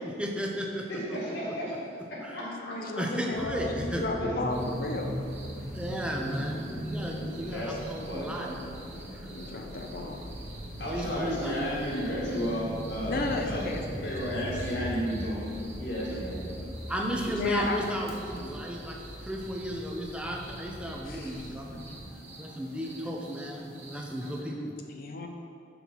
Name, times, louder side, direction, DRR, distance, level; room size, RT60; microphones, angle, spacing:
voice 1, 0.2-1.4 2.2-2.6 3.0-4.0 5.7-9.3 10.8-11.8 16.9-21.7 22.4-24.8 25.1-25.2, equal, 5° right, 0 dB, 0.6 m, -34 dB
voice 2, 0.9-1.8 2.1-3.1 4.2-4.3 7.4-7.8 8.1-8.4 10.8-13.8 14.0-15.5 15.8-16.7, equal, 70° left, -4 dB, 1.7 m, -33 dB
voice 3, 2.4-5.2 7.2-7.4 9.3-10.2 13.1-14.7 17.3-17.8 21.1-21.5 22.3-22.5 24.0-24.1 24.9-25.3, left 2 dB, 50° left, 3 dB, 0.6 m, -34 dB
sound 1, 3.3-22.0, equal, 55° right, 1.5 m, -39 dB
sound 2, 4.5-24.4, right 2 dB, 35° right, 1.1 m, -49 dB
5.8 x 4.5 x 5.5 m, 2.4 s
head